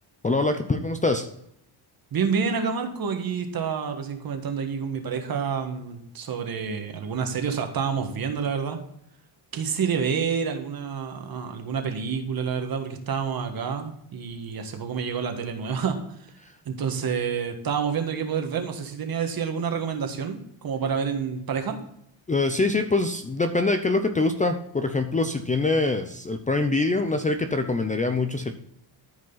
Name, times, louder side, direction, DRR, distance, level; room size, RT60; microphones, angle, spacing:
voice 1, 0.2-1.3 16.4-16.5 22.3-28.5, left 3 dB, 15° left, 7 dB, 0.6 m, -24 dB
voice 2, 2.1-8.8 9.5-16.0 16.6-21.8, right 6 dB, 45° right, 6 dB, 1.6 m, -28 dB
13.5 x 5.2 x 4.0 m, 0.73 s
cardioid pair, 135°, 50 cm